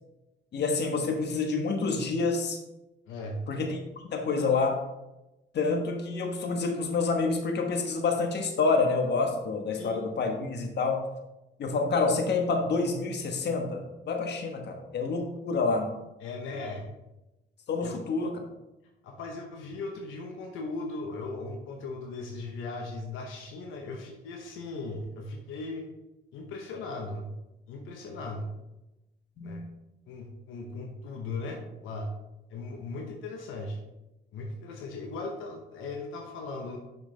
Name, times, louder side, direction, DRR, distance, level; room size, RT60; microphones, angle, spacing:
voice 1, 0.5-2.6 3.5-4.8 5.5-11.0 11.6-15.9 17.7-18.4 29.4-29.6, left 4 dB, 60° left, 3 dB, 1.2 m, -28 dB
voice 2, 3.1-3.4 9.7-10.0 16.2-16.9 17.8-18.0 19.0-25.9 26.3-27.3 27.7-28.5 29.4-29.6 30.1-32.1 32.5-33.8 34.3-36.8, left 3 dB, 85° left, 2 dB, 1.0 m, -38 dB
6.5 x 6.1 x 3.3 m, 0.96 s
cardioid pair, 90°, 20 cm